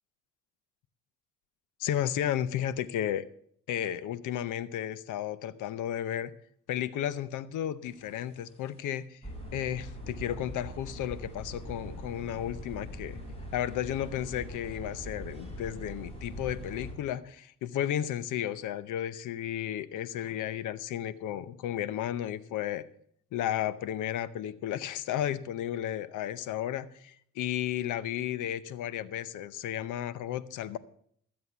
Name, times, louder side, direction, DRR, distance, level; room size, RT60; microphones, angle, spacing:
voice 1, 1.8-3.3 3.7-6.3 6.7-9.2 9.5-13.2 13.5-22.9 23.3-30.8, left 11 dB, 80° left, 17 dB, 0.8 m, -33 dB
sound 1, 8.0-8.3 8.8-8.9 9.2-16.9, equal, 20° left, 5.6 m, -42 dB
13.0 x 7.8 x 6.7 m, 0.64 s
cardioid pair, 90°, 30 cm